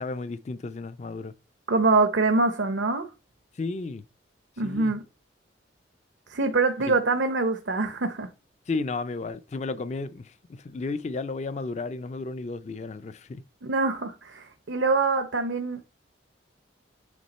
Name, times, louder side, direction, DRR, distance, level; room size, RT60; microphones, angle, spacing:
voice 1, 0.0-1.4 3.5-4.0 4.6-4.9 6.9-7.0 8.7-13.4, left 3 dB, 35° left, 0.4 m, -33 dB
voice 2, 1.7-3.1 4.6-5.0 6.3-8.3 13.6-15.8, right 3 dB, 75° right, 0.8 m, -24 dB
8.4 x 3.6 x 4.1 m
head